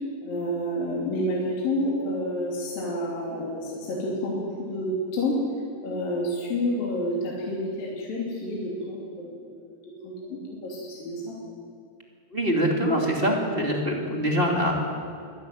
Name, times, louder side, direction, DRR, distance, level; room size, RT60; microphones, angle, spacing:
voice 1, 0.2-5.4 5.8-9.7 10.0-11.3, left 1 dB, 55° left, -4 dB, 4.7 m, -29 dB
voice 2, 12.3-14.9, equal, 15° right, 0 dB, 2.1 m, -24 dB
23.5 x 14.0 x 9.3 m, 2.3 s
omnidirectional pair, 4.9 m